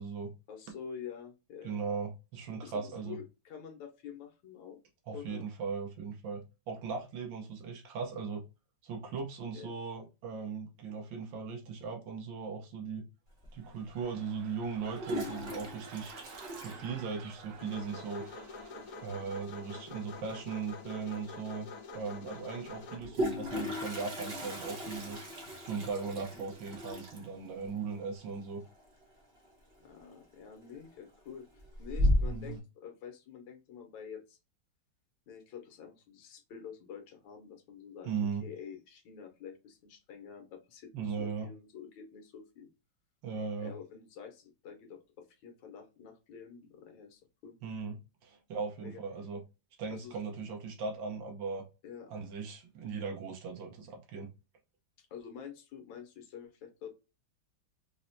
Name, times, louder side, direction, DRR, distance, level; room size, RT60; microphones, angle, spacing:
voice 1, 0.5-1.8 2.6-4.8 5.1-5.5 9.5-9.7 29.8-34.4 35.3-38.1 38.4-42.7 43.6-47.6 48.3-48.4 48.8-49.0 49.9-50.2 51.8-52.1 55.0-56.9, left 7 dB, 85° left, 4 dB, 1.5 m, -48 dB
voice 2, 1.6-3.2 5.1-6.4 6.7-8.4 8.8-13.0 13.5-16.2 16.6-18.3 19.0-25.2 25.6-28.6 32.3-32.6 38.0-38.4 40.9-41.5 43.2-43.7 47.6-48.0 48.2-49.4 49.8-51.6 52.1-54.3, right 5 dB, 85° right, 0 dB, 1.6 m, -38 dB
Toilet flush, 13.4-13.5 14.7-17.6 17.8-17.9 18.2-18.3 18.6-19.0 20.7-20.8 21.1-21.2 22.8-29.5 29.7-30.2 30.6-31.1 31.5-32.5, left 1 dB, 45° right, 0.9 m, -35 dB
sound 1, 13.5-19.4 19.8-20.1, right 6 dB, 65° right, 1.1 m, -52 dB
sound 2, 17.6-23.0, left 3 dB, 60° left, 1.2 m, -46 dB
4.5 x 2.1 x 2.6 m, 0.28 s
omnidirectional pair, 2.0 m